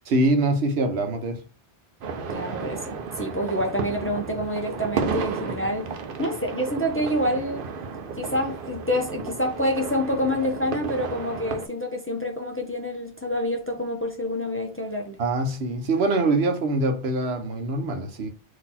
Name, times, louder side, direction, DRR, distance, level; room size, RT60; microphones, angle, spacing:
voice 1, 0.1-1.4 15.2-18.3, right 2 dB, 85° right, 1.1 m, -24 dB
sound 1, 2.0-11.7, right 5 dB, 60° right, 0.8 m, -33 dB
voice 2, 2.3-7.7 8.2-15.2, equal, 15° left, 0.6 m, -27 dB
4.0 x 2.8 x 4.1 m
omnidirectional pair, 1.1 m